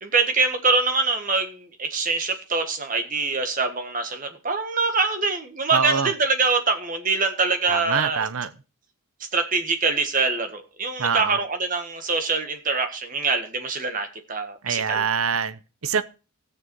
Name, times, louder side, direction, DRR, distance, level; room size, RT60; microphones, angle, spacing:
voice 1, 0.0-8.3 9.3-15.0, right 4 dB, 35° right, 1.6 m, -24 dB
voice 2, 5.7-6.1 7.7-8.5 11.0-11.4 14.6-16.0, right 6 dB, 70° right, 0.8 m, -25 dB
16.5 x 6.9 x 4.7 m
head